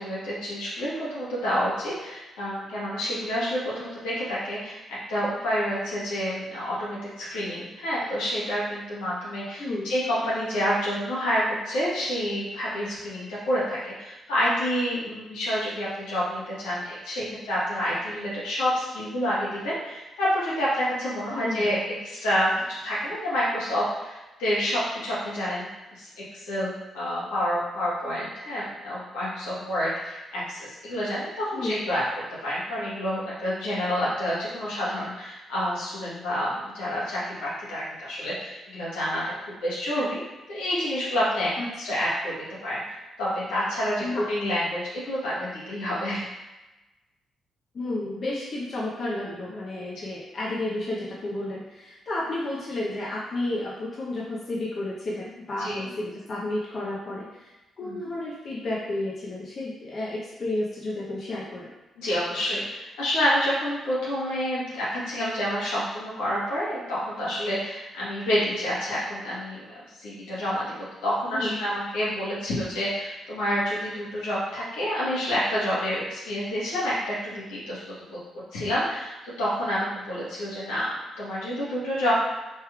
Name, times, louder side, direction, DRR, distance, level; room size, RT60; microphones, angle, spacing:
voice 1, 0.0-4.8 5.1-21.8 22.0-26.1 26.3-32.0 32.4-39.2 39.6-40.2 40.5-41.5 41.8-42.3 42.6-46.3 55.5-55.9 57.8-58.0 62.0-69.7 70.0-70.7 71.0-77.8 78.1-78.2 78.5-80.9 81.2-82.1, equal, 85° left, -8 dB, 1.1 m, -28 dB
voice 2, 9.6-9.9 21.3-21.6 31.5-31.9 41.6-42.0 44.0-44.2 47.7-57.5 57.8-61.7 71.3-71.6, left 2 dB, 55° left, -5 dB, 0.7 m, -32 dB
3.3 x 3.2 x 2.3 m, 1.0 s
supercardioid pair, 50°, 0 cm